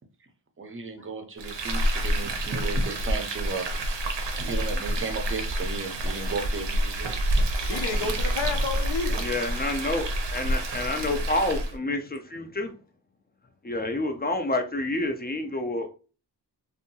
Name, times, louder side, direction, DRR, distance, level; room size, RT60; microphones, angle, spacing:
voice 1, 0.6-3.7 4.4-7.1 7.3-7.4 8.0-8.2, right 4 dB, 30° right, 0.5 m, -34 dB
Frying (food), 1.4-11.8, right 1 dB, 80° right, 0.6 m, -28 dB
voice 2, 7.7-9.2, left 4 dB, 80° left, 0.6 m, -30 dB
voice 3, 9.1-12.7 13.6-15.9, left 2 dB, 25° left, 0.4 m, -28 dB
2.7 x 2.3 x 2.6 m
wide cardioid pair, 100°, 42 cm